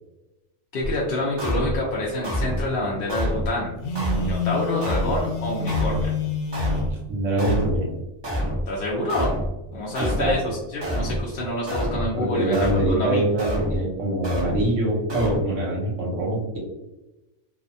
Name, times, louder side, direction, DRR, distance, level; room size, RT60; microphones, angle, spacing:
voice 1, 0.7-3.8 4.2-6.2 8.7-9.3 9.7-12.5 12.9-13.2, left 1 dB, 60° left, -4 dB, 0.6 m, -27 dB
sound 1, 0.8-0.9 1.4-1.8 2.2-2.7 3.1-3.5 4.0-4.4 4.8-5.2 5.7-6.1 6.5-6.9 7.4-7.8 8.2-8.7 9.1-9.5 10.0-10.4 10.8-11.2 11.7-12.1 12.5-12.9 13.4-13.8 14.2-14.7 15.1-15.4, equal, 35° right, 0.4 m, -26 dB
Telephone, 3.8-6.9, left 5 dB, 75° left, 1.0 m, -28 dB
voice 2, 6.9-7.9 10.0-10.4 12.1-16.6, right 1 dB, 65° right, -2 dB, 1.1 m, -24 dB
2.7 x 2.1 x 2.6 m, 0.99 s
omnidirectional pair, 1.4 m